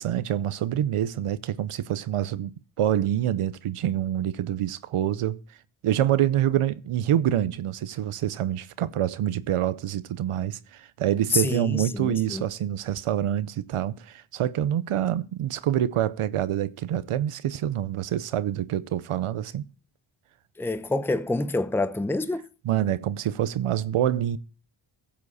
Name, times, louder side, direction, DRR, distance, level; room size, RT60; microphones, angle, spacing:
voice 1, 0.0-5.4 5.8-19.6 22.6-24.4, right 11 dB, 90° right, 0.8 m, -26 dB
voice 2, 11.3-12.4 20.6-22.4, left 2 dB, 5° left, 0.7 m, -27 dB
15.0 x 7.4 x 4.1 m
cardioid pair, 50°, 50 cm